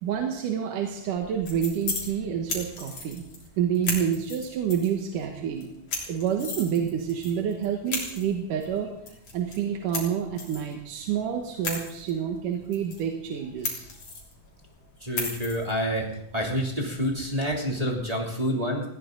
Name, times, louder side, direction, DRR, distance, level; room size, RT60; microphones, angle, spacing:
voice 1, 0.0-3.2 3.6-5.7 6.1-8.9 9.3-13.8, right 8 dB, 80° right, 3 dB, 2.9 m, -28 dB
sound 1, 1.2-18.1, left 4 dB, 55° left, 4.7 m, -38 dB
voice 2, 15.0-16.0 16.3-18.8, equal, 10° right, -2 dB, 2.7 m, -28 dB
19.5 x 16.5 x 4.0 m, 0.76 s
omnidirectional pair, 3.7 m